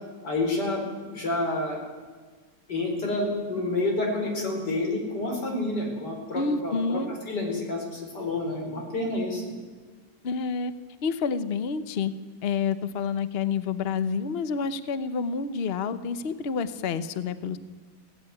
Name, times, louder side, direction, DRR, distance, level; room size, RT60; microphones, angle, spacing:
voice 1, 0.2-1.8 2.7-7.0 7.3-9.4, left 2 dB, 70° left, 1 dB, 5.1 m, -29 dB
voice 2, 6.3-7.1 10.2-10.7 11.0-12.1 12.4-17.6, left 5 dB, 45° left, 13 dB, 1.0 m, -28 dB
17.0 x 15.5 x 9.7 m, 1.5 s
omnidirectional pair, 1.9 m